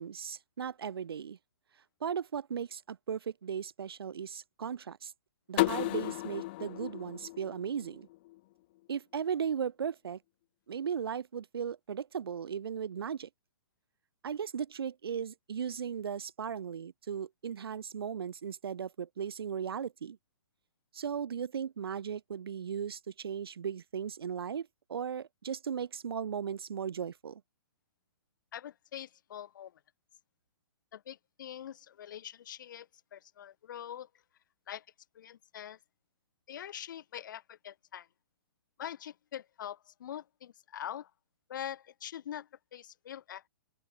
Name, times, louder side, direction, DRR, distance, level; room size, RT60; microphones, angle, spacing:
voice 1, 0.0-1.4 2.0-5.1 5.5-8.1 8.9-10.2 10.7-13.3 14.2-20.2 20.9-27.4, right 7 dB, 75° right, 3.2 m, -37 dB
sound 1, 5.6-8.4, left 19 dB, 25° left, 0.4 m, -34 dB
voice 2, 28.5-29.7 30.9-34.1 34.7-34.8 35.1-35.8 36.5-38.1 38.8-41.1 41.5-43.5, left 10 dB, 55° left, 1.7 m, -44 dB
open air
hypercardioid pair, 165°, 13 cm